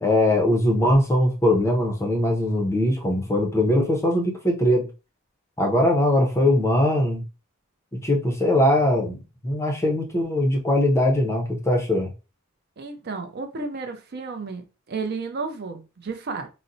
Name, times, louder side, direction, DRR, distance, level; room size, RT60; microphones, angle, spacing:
voice 1, 0.0-4.9 5.6-7.2 7.9-12.1, left 1 dB, 15° left, 0.5 m, -21 dB
voice 2, 12.8-16.5, right 4 dB, 45° right, 0.4 m, -32 dB
3.9 x 2.0 x 2.6 m
head